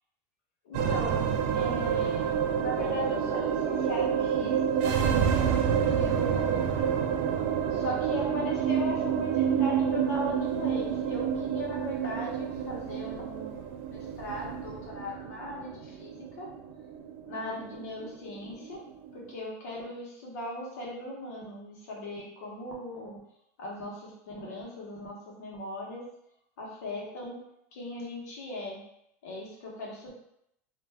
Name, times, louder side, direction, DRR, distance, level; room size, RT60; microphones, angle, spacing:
voice 1, 0.6-5.0 5.8-7.2 7.7-16.5 17.3-18.8 19.1-23.2 23.6-26.0 26.6-27.4 27.7-28.8 29.2-30.1, left 1 dB, 85° left, -3 dB, 1.0 m, -38 dB
sound 1, 0.7-19.2, right 8 dB, 50° right, 0.3 m, -29 dB
2.5 x 2.3 x 3.3 m, 0.78 s
supercardioid pair, 170°, 8 cm